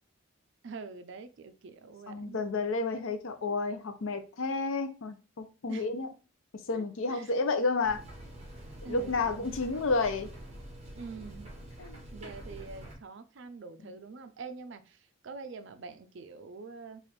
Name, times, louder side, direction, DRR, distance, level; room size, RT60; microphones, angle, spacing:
voice 1, 0.6-2.4 5.7-5.9 6.7-7.3 8.8-9.5 10.9-11.5 12.1-15.0 15.2-17.0, right 4 dB, 55° right, 11 dB, 0.4 m, -45 dB
voice 2, 2.1-6.1 6.7-8.0 8.8-10.3 11.8-12.0 13.8-14.0, left 3 dB, 65° left, 8 dB, 0.5 m, -31 dB
sound 1, 7.8-12.9, right 1 dB, 30° right, 1.0 m, -46 dB
3.3 x 2.4 x 4.1 m, 0.34 s
head